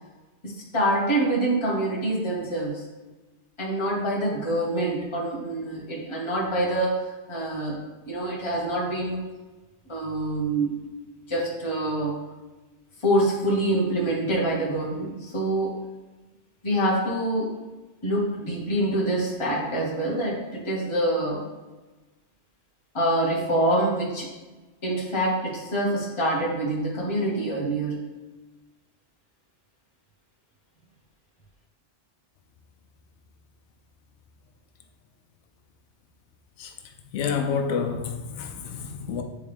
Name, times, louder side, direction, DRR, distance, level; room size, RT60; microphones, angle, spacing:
voice 1, 0.4-2.8 3.6-9.2 9.9-10.8 11.3-12.2 13.0-15.8 16.6-17.6 18.0-21.5 22.9-24.3 24.8-28.2, right 1 dB, 25° left, 1.3 m, -26 dB
voice 2, 37.1-39.2, left 6 dB, 75° left, 0.9 m, -28 dB
8.8 x 3.6 x 3.5 m
omnidirectional pair, 1.2 m